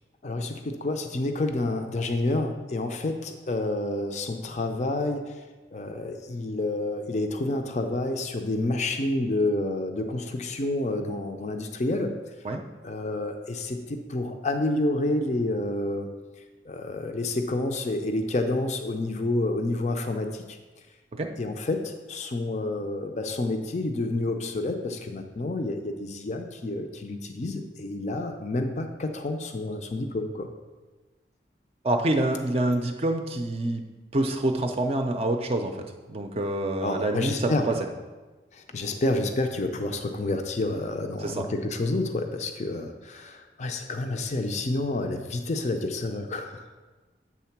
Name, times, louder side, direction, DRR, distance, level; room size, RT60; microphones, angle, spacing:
voice 1, 0.2-5.3 5.7-12.2 12.8-16.1 16.7-20.6 21.4-30.5 36.8-37.7 38.5-46.6, left 2 dB, 40° left, 5 dB, 0.5 m, -29 dB
voice 2, 31.8-33.8 34.1-35.7 36.1-37.7 41.2-41.4, right 1 dB, 35° right, 4 dB, 0.5 m, -26 dB
8.4 x 3.7 x 5.8 m, 1.3 s
head